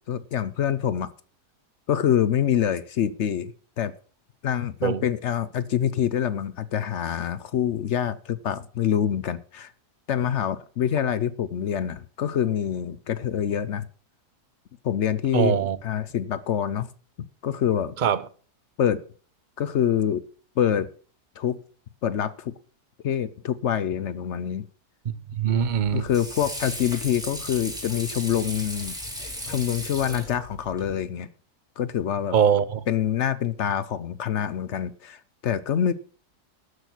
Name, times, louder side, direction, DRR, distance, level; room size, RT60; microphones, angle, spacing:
voice 1, 0.1-1.1 1.9-3.9 4.4-9.7 10.1-13.9 14.8-16.9 17.4-17.9 18.8-19.0 19.6-20.3 20.6-20.9 21.4-21.6 22.0-22.5 23.0-24.7 25.9-28.9 29.5-31.3 31.8-32.4 32.9-35.9, left 9 dB, 60° left, 0.8 m, -26 dB
voice 2, 15.3-15.8 18.0-18.3 25.0-26.0 32.3-32.8, right 8 dB, 55° right, 0.5 m, -22 dB
Water / Sink (filling or washing), 25.5-30.9, equal, ahead, 2.9 m, -36 dB
13.0 x 6.5 x 6.1 m
omnidirectional pair, 1.7 m